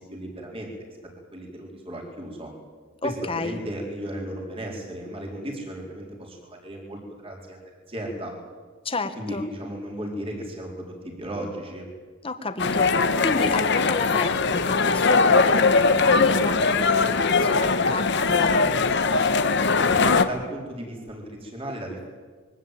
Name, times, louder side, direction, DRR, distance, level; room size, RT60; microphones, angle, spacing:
voice 1, 0.1-0.7 1.3-2.5 3.0-8.3 9.2-11.9 19.7-22.1, right 1 dB, 25° right, 0 dB, 4.3 m, -35 dB
voice 2, 3.0-3.6 8.8-9.5 12.2-18.7, left 2 dB, 25° left, 9 dB, 1.6 m, -31 dB
sound 1, 12.6-20.2, left 4 dB, 55° left, 1.3 m, -20 dB
23.0 x 17.0 x 9.2 m, 1.5 s
head